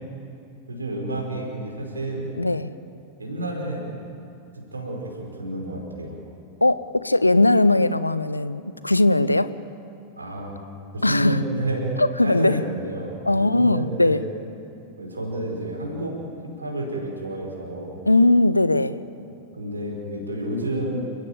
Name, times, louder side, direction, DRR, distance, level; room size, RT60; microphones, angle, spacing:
voice 1, 0.7-2.3 3.2-3.9 4.7-6.2 10.1-10.6 10.9-14.3 15.0-16.2 16.4-18.0 19.6-21.1, right 1 dB, 80° right, 0 dB, 5.4 m, -30 dB
voice 2, 2.3-2.7 6.6-9.5 11.0-11.4 12.0-12.6 13.3-14.2 18.1-19.0, left 2 dB, 85° left, 15 dB, 0.7 m, -19 dB
29.5 x 16.0 x 7.4 m, 2.7 s
figure-of-eight pair, 90°, 0 cm